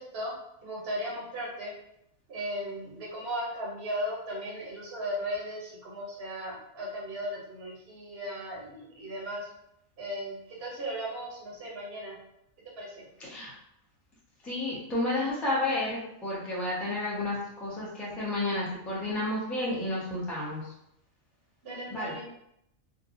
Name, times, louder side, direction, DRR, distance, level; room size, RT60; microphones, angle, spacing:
voice 1, 0.6-1.7 2.3-9.5 10.0-12.2 12.8-13.0 21.6-22.2, equal, 50° right, -5 dB, 1.0 m, -36 dB
voice 2, 13.2-13.5 14.4-20.7 21.9-22.1, left 2 dB, ahead, -7 dB, 0.7 m, -31 dB
3.8 x 2.2 x 2.5 m, 0.79 s
omnidirectional pair, 1.4 m